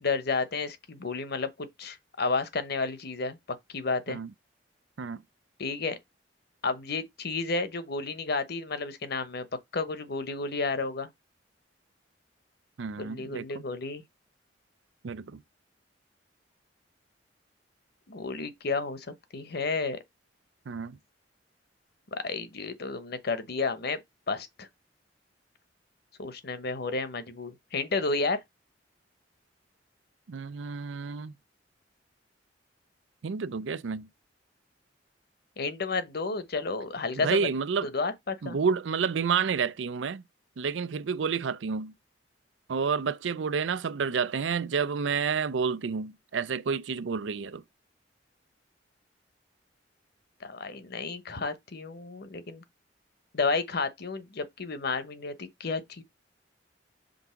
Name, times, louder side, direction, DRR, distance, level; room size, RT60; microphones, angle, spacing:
voice 1, 0.0-3.4 3.7-4.2 5.6-6.0 6.6-9.5 9.7-11.1 13.0-14.0 18.1-19.1 19.3-20.0 22.1-24.0 24.3-24.7 26.2-28.4 35.6-37.5 37.8-38.6 50.4-52.6 53.3-56.0, left 4 dB, 60° left, 1.0 m, -31 dB
voice 2, 12.8-13.6 15.0-15.4 20.7-21.0 30.3-31.3 33.2-34.1 37.2-37.9 38.4-40.2 40.6-41.9 42.7-47.6, right 6 dB, 90° right, 0.5 m, -30 dB
5.3 x 3.5 x 5.7 m
head